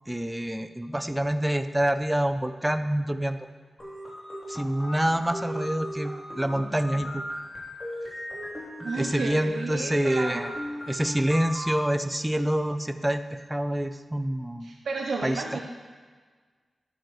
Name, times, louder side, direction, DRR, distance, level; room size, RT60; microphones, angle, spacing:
voice 1, 0.1-3.4 4.5-7.2 8.8-10.5 10.9-14.7 15.2-15.6, right 1 dB, 10° right, 10 dB, 0.5 m, -27 dB
sound 1, 3.8-11.8, equal, 30° left, 3.0 m, -36 dB
voice 2, 8.8-10.5 14.6-15.6, right 4 dB, 80° right, 0 dB, 0.6 m, -32 dB
10.5 x 8.8 x 3.2 m, 1.5 s
cardioid pair, 75°, 0 cm